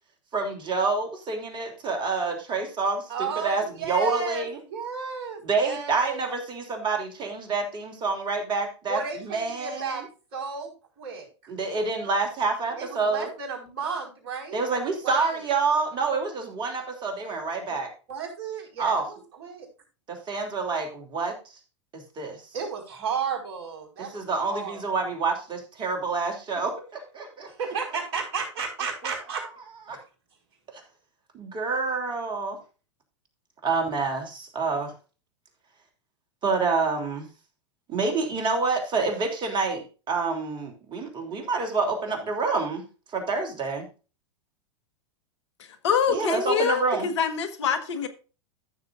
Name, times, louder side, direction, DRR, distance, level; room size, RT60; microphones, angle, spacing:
voice 1, 0.3-4.6 5.4-10.0 11.5-13.3 14.5-17.9 18.8-19.1 20.1-21.4 21.9-22.4 24.0-27.5 29.0-29.1 29.9-30.0 30.7-30.8 31.3-32.6 33.6-34.9 36.4-37.3 37.9-42.9 43.1-43.9 46.1-47.1, right 4 dB, 30° right, 4 dB, 3.2 m, -28 dB
voice 2, 3.1-6.2 8.9-10.0 10.3-10.7 11.0-11.5 12.8-14.6 15.0-15.4 17.7-17.8 18.1-19.7 22.5-24.2 24.5-24.8 27.5-29.5, right 6 dB, 45° right, 1 dB, 4.8 m, -33 dB
voice 3, 45.8-48.1, left 7 dB, 70° left, 9 dB, 1.5 m, -25 dB
14.5 x 6.8 x 2.6 m, 0.33 s
hypercardioid pair, 100°, 15 cm